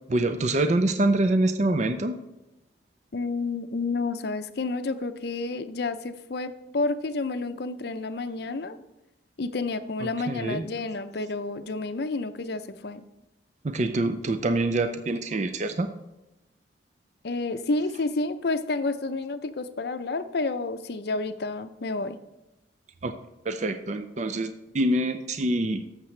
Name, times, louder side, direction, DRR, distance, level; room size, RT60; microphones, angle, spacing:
voice 1, 0.1-2.2 10.0-10.7 13.6-15.9 23.0-23.1 23.4-25.8, right 2 dB, 40° right, 9 dB, 0.4 m, -25 dB
voice 2, 3.1-8.8 9.4-13.0 17.2-22.2, left 3 dB, 55° left, 10 dB, 0.5 m, -30 dB
11.5 x 7.4 x 3.2 m, 0.98 s
head